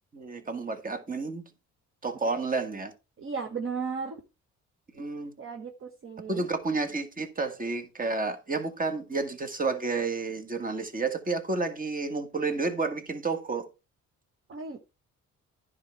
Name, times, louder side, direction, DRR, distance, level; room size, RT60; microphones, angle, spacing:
voice 1, 0.1-1.4 2.0-2.9 4.9-5.3 6.3-13.7, right 3 dB, 30° right, 1.7 m, -30 dB
voice 2, 3.2-4.2 5.4-6.5 14.5-14.8, right 5 dB, 45° right, 1.2 m, -35 dB
10.5 x 4.8 x 4.5 m
cardioid pair, 90°, 30 cm